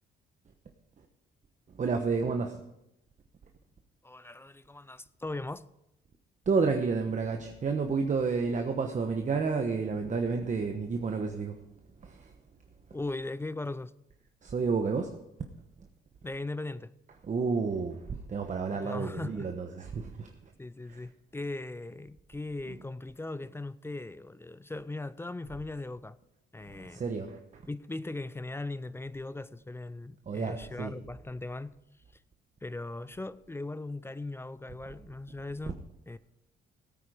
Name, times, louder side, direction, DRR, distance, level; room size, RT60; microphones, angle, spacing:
voice 1, 1.7-2.6 6.5-11.6 12.0-12.3 14.4-15.1 17.2-20.3 20.9-21.1 22.7-22.8 26.6-27.6 30.3-30.9, right 4 dB, 40° right, 1.1 m, -30 dB
voice 2, 4.0-5.7 12.9-13.9 16.2-16.9 18.7-19.5 20.6-26.2 26.5-27.0 27.7-31.8 32.6-35.8 36.1-36.2, left 2 dB, 10° left, 0.4 m, -39 dB
16.0 x 8.9 x 5.0 m
cardioid pair, 90°, 20 cm